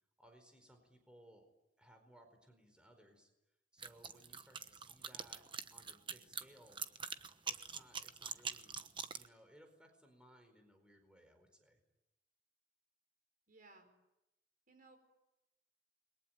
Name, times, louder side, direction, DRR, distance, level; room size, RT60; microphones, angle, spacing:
voice 1, 0.2-1.5 1.8-3.3 3.7-5.4 5.7-6.8 7.5-8.8 9.1-11.8, equal, 5° right, 5 dB, 4.6 m, -63 dB
sound 1, 3.8-9.3, right 6 dB, 30° right, 1.2 m, -44 dB
voice 2, 13.5-13.9 14.7-15.0, right 3 dB, 50° right, 7 dB, 5.1 m, -61 dB
29.5 x 22.5 x 9.0 m, 0.93 s
head